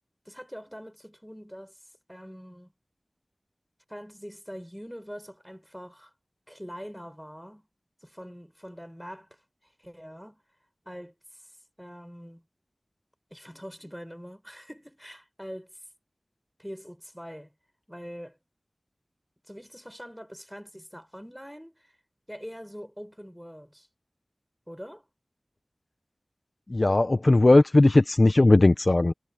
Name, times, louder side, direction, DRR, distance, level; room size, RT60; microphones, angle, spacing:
voice 1, 0.3-1.7 2.1-2.7 3.9-6.1 6.5-7.7 8.0-9.3 9.8-10.4 10.9-11.1 11.8-12.4 13.3-15.7 16.6-17.5 17.9-18.4 19.5-21.8 22.3-23.9 24.7-25.0, equal, ahead, 7.0 m, -43 dB
voice 2, 26.7-29.1, left 2 dB, 50° left, 0.9 m, -18 dB
wide cardioid pair, 45°, 0 cm